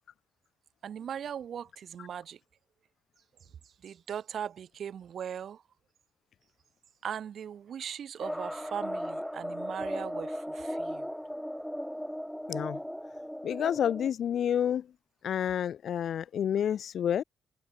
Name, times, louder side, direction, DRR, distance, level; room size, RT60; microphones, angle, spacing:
voice 1, 0.8-2.4 3.8-5.6 7.0-11.1, right 8 dB, 65° right, 1.1 m, -39 dB
sound 1, 8.2-14.1, equal, ahead, 3.0 m, -37 dB
voice 2, 12.5-12.8 13.4-14.9 15.2-17.2, left 9 dB, 70° left, 0.6 m, -29 dB
open air
cardioid pair, 85°, 0 cm